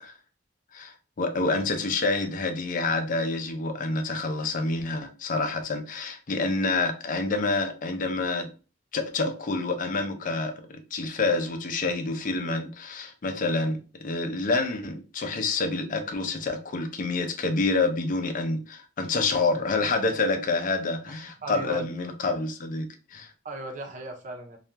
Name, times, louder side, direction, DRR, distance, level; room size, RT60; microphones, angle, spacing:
voice 1, 0.7-8.5 8.9-23.3, left 3 dB, 50° left, 0.5 m, -28 dB
voice 2, 21.1-21.8 23.4-24.6, right 2 dB, 45° right, 0.5 m, -37 dB
2.4 x 2.2 x 2.8 m
head